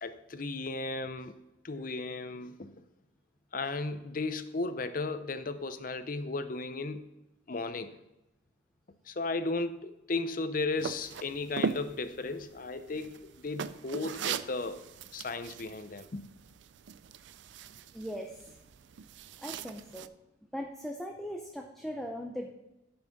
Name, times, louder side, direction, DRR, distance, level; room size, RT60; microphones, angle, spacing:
voice 1, 0.0-1.3 1.6-2.7 3.5-7.1 7.5-8.0 9.1-14.8 15.1-16.2, left 3 dB, 45° left, 11 dB, 0.6 m, -35 dB
sound 1, 10.8-20.1, right 6 dB, 65° right, 0.4 m, -40 dB
voice 2, 17.9-18.6 19.4-20.1 20.5-22.5, equal, ahead, 2 dB, 0.6 m, -39 dB
10.5 x 5.9 x 5.2 m, 0.95 s
head